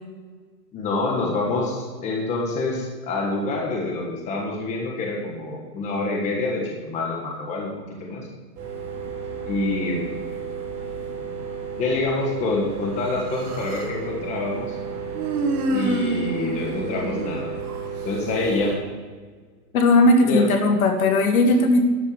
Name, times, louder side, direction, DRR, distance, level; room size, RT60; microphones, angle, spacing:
voice 1, 0.7-7.7 8.0-8.3 9.4-10.1 11.8-14.7 15.7-17.5 18.0-18.8 20.2-20.5, left 3 dB, 15° left, -1 dB, 1.5 m, -26 dB
sound 1, 8.5-18.8, right 6 dB, 20° right, 2.8 m, -33 dB
Human voice, 13.0-14.0 15.1-17.9, right 2 dB, 60° right, 2.0 m, -28 dB
voice 2, 19.7-21.8, left 2 dB, 60° left, 5 dB, 1.6 m, -17 dB
12.0 x 6.5 x 5.5 m, 1.5 s
hypercardioid pair, 160°, 49 cm